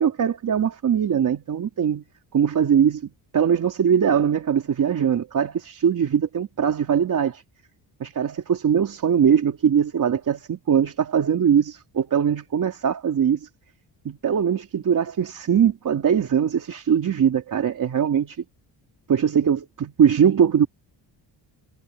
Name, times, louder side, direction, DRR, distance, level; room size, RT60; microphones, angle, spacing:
voice 1, 0.0-2.0 2.3-7.4 8.0-13.5 14.0-18.4 19.1-20.7, right 8 dB, 45° right, 3.2 m, -21 dB
cardioid pair, 170°, 45 cm